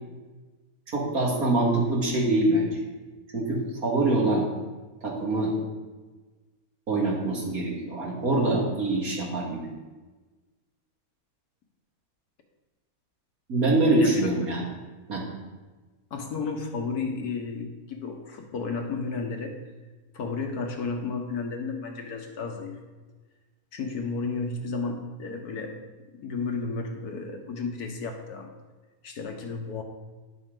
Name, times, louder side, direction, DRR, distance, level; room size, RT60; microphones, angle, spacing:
voice 1, 0.9-2.8 3.3-4.5 5.0-5.5 6.9-9.7 13.5-14.6 15.1-15.2, right 2 dB, 70° right, -2 dB, 2.6 m, -24 dB
voice 2, 14.0-14.3 16.1-19.5 20.1-22.8 23.7-25.8 26.2-28.5 29.0-29.8, left 4 dB, 90° left, 4 dB, 1.7 m, -32 dB
11.0 x 7.7 x 3.9 m, 1.3 s
omnidirectional pair, 1.6 m